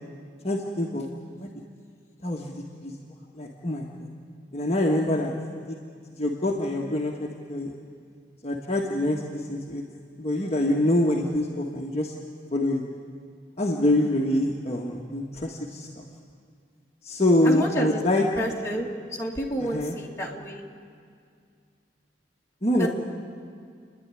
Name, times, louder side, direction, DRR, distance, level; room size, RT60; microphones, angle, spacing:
voice 1, 0.4-1.0 1.4-1.5 2.2-2.9 3.4-4.1 4.5-5.3 5.7-5.8 6.2-7.1 7.5-7.7 8.4-9.8 10.2-12.1 12.5-12.8 13.6-16.0 17.0-18.3 19.6-20.0 22.6-22.9, left 1 dB, 35° left, -1 dB, 1.5 m, -25 dB
voice 2, 17.5-18.9 19.2-20.6 22.8-22.9, equal, 15° left, -2 dB, 2.4 m, -29 dB
30.0 x 11.0 x 9.8 m, 2.2 s
head